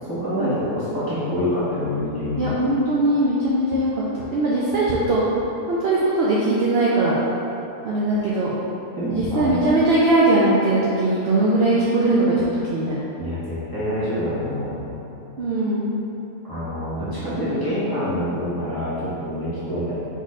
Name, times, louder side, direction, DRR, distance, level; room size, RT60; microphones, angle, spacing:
voice 1, 0.0-2.6 9.0-9.5 13.2-14.9 16.4-19.9, equal, 15° left, -13 dB, 1.2 m, -26 dB
voice 2, 2.4-5.4 5.7-7.2 7.8-8.5 9.1-13.0 15.4-15.9, right 2 dB, 65° right, -7 dB, 0.7 m, -20 dB
3.9 x 3.0 x 4.0 m, 3.0 s
omnidirectional pair, 1.5 m